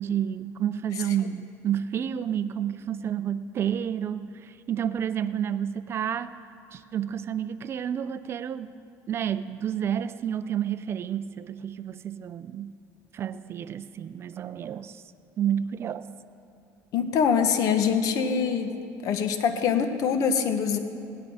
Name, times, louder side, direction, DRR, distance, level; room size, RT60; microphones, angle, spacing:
voice 1, 0.0-6.3 6.7-8.7 9.1-12.8 13.1-15.0 15.4-16.0, right 9 dB, 35° right, 14 dB, 0.4 m, -30 dB
voice 2, 16.9-18.7 19.0-20.8, left 6 dB, 55° left, 8 dB, 1.1 m, -24 dB
17.5 x 11.0 x 4.9 m, 2.5 s
cardioid pair, 135°, 7 cm